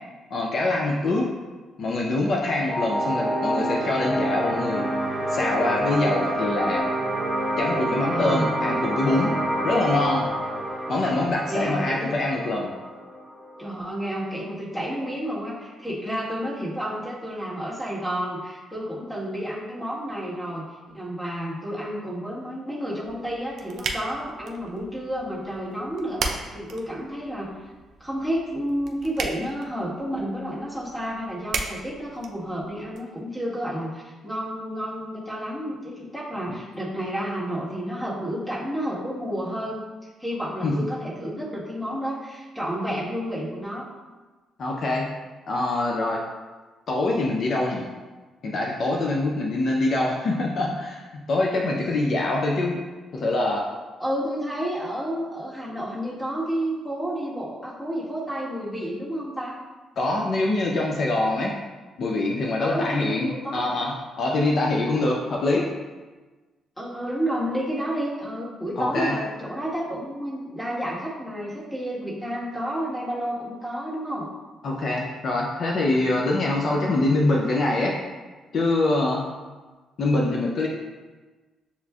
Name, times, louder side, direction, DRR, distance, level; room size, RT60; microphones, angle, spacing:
voice 1, 0.3-1.3 1.8-4.9 5.3-6.9 7.6-9.4 9.6-10.3 10.9-12.7 40.6-40.9 44.6-45.1 45.5-46.2 46.9-47.8 48.4-52.8 53.1-53.7 60.0-61.5 62.0-65.7 68.8-69.2 74.6-78.0 78.5-79.3 80.0-80.7, left 2 dB, 55° left, -1 dB, 0.5 m, -24 dB
sound 1, 2.7-13.7, right 1 dB, 30° left, 1.0 m, -27 dB
voice 2, 8.1-8.6 11.5-12.2 13.6-20.6 20.9-26.2 26.5-27.7 28.0-39.8 40.2-43.9 54.0-59.6 62.6-63.6 65.1-65.2 66.8-74.3, equal, 5° left, -7 dB, 1.4 m, -30 dB
sound 2, 23.0-33.0, right 4 dB, 65° right, 0.4 m, -37 dB
6.8 x 2.4 x 2.3 m, 1.3 s
cardioid pair, 90°, 0 cm